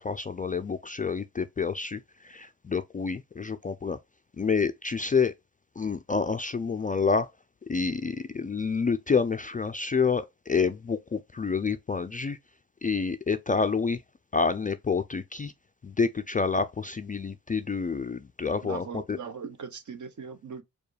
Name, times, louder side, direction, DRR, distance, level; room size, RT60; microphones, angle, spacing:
voice 1, 0.0-4.0 4.4-5.3 5.8-7.3 7.6-12.4 12.8-14.0 14.3-15.5 15.8-19.2, left 5 dB, 25° left, 0.3 m, -28 dB
voice 2, 18.6-20.6, right 6 dB, 50° right, 0.9 m, -39 dB
4.5 x 2.3 x 3.2 m
supercardioid pair, 50°, 38 cm